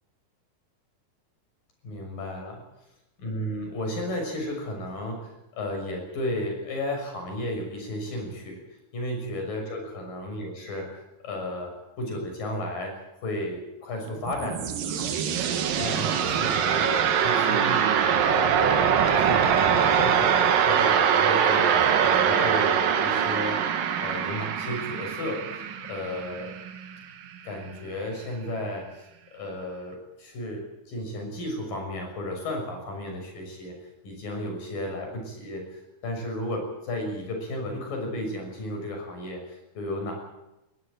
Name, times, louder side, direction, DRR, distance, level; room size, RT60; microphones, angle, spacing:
voice 1, 1.8-2.6 3.2-8.6 8.9-15.3 15.8-20.3 20.6-23.6 24.0-25.4 25.8-26.5 27.4-33.8 34.0-40.2, left 1 dB, 75° left, 3 dB, 8.1 m, -34 dB
sound 1, 14.1-26.9, right 8 dB, 80° right, 3.3 m, -23 dB
21.5 x 16.5 x 9.1 m, 0.93 s
omnidirectional pair, 3.9 m